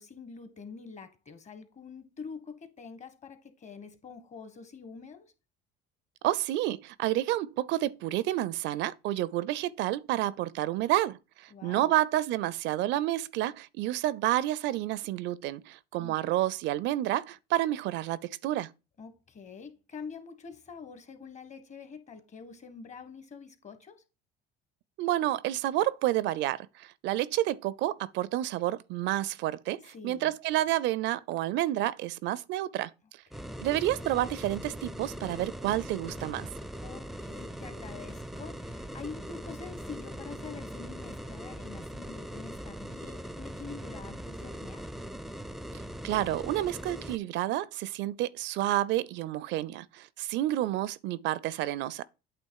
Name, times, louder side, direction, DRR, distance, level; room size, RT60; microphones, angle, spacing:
voice 1, 0.0-5.3 11.5-11.9 16.0-16.4 19.0-24.0 29.9-30.3 33.3-33.6 36.8-44.9, left 5 dB, 35° left, 1.3 m, -46 dB
voice 2, 6.2-18.7 25.0-32.9 33.6-36.5 46.0-52.0, right 14 dB, 65° right, 0.5 m, -30 dB
sound 1, 33.3-47.2, equal, ahead, 0.4 m, -41 dB
8.5 x 3.0 x 4.7 m
supercardioid pair, 90°, 20 cm